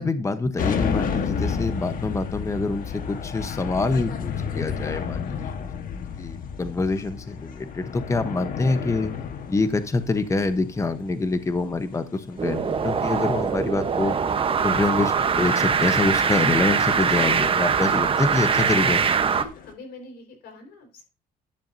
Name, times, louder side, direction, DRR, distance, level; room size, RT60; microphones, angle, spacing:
voice 1, 0.0-5.2 6.1-9.1 9.5-14.1 14.6-19.1, left 3 dB, 20° left, 10 dB, 0.9 m, -26 dB
sound 1, 0.6-19.7, left 6 dB, 55° left, 1.4 m, -33 dB
voice 2, 5.1-5.4 19.2-21.0, left 3 dB, 70° left, 4 dB, 4.7 m, -44 dB
sound 2, 12.4-19.4, right 6 dB, 30° right, 1.0 m, -22 dB
11.5 x 11.0 x 2.7 m, 0.29 s
cardioid pair, 110°, 17 cm